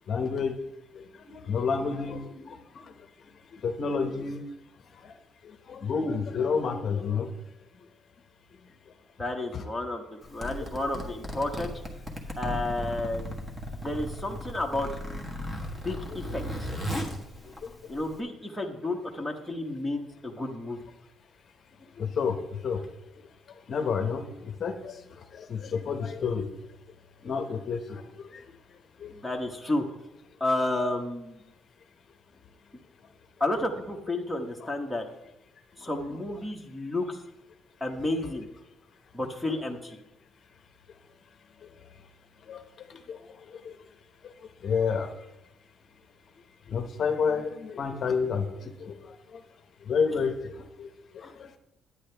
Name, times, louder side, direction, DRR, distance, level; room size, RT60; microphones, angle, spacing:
voice 1, 0.1-0.6 0.9-3.1 3.5-4.4 4.9-5.2 5.4-7.4 8.9-9.0 9.5-9.6 10.9-11.1 13.9-14.1 16.1-16.2 17.4-18.0 21.8-22.8 23.7-26.5 27.2-28.5 29.0-29.1 34.6-34.7 35.8-36.2 41.6-41.7 42.4-43.9 44.2-45.2 46.7-49.4 49.8-51.6, left 5 dB, 45° left, 6 dB, 0.8 m, -31 dB
voice 2, 9.2-11.8 12.4-13.3 13.7-14.9 15.8-16.7 17.9-20.8 29.1-29.8 30.4-31.4 33.4-35.1 35.8-37.2 37.8-38.5 39.1-40.0 51.2-51.3, left 2 dB, ahead, 0 dB, 1.1 m, -31 dB
Zipper (clothing), 10.2-18.2, equal, 15° right, 1.4 m, -36 dB
10.0 x 9.4 x 3.4 m, 0.91 s
cardioid pair, 140°, 0 cm